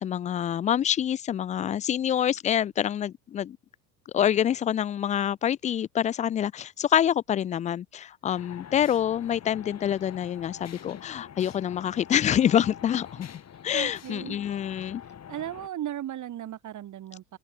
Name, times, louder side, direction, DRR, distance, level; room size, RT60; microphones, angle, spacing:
voice 1, 0.0-3.6 4.1-13.3 13.6-15.0, left 10 dB, 15° left, 0.5 m, -26 dB
sound 1, 8.3-15.7, left 9 dB, 30° left, 7.6 m, -45 dB
voice 2, 13.7-14.4 15.3-17.4, right 12 dB, 35° right, 4.7 m, -36 dB
open air
figure-of-eight pair, 70°, 50 cm